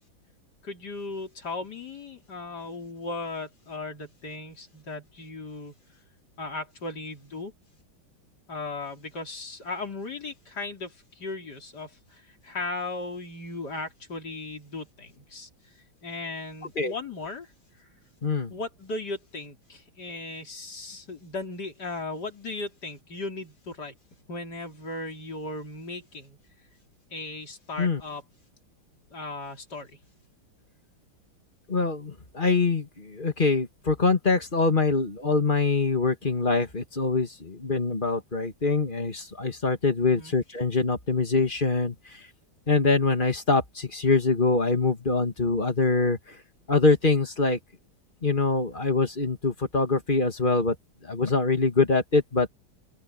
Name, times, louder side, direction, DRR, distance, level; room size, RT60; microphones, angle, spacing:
voice 1, 0.6-5.7 6.4-7.5 8.5-15.5 16.0-17.5 17.8-17.9 18.5-23.9 24.3-26.4 27.1-28.2 29.1-29.9 40.1-40.3, left 3 dB, 50° left, 4.1 m, -37 dB
voice 2, 18.2-18.5 27.8-28.0 31.7-42.2 42.7-46.4 46.7-47.6 48.2-50.8 51.0-52.5, left 3 dB, 25° left, 2.4 m, -24 dB
open air
omnidirectional pair, 2.2 m